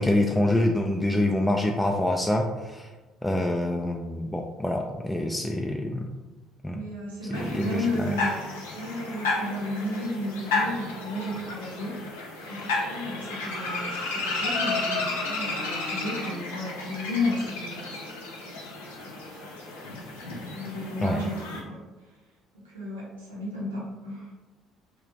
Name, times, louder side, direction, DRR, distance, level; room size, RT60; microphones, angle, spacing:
voice 1, 0.0-2.9 3.2-6.1 6.6-6.8 7.3-8.1 21.0-21.2, left 1 dB, 10° left, 1 dB, 0.3 m, -26 dB
voice 2, 6.7-8.4 8.7-12.0 12.5-18.2 18.5-18.6 19.0-19.5 20.5-21.8 22.6-24.3, left 1 dB, 80° right, -5 dB, 0.8 m, -33 dB
sound 1, 7.3-21.6, left 3 dB, 75° left, 0.5 m, -32 dB
3.0 x 2.4 x 3.1 m, 1.2 s
figure-of-eight pair, 55°, 0 cm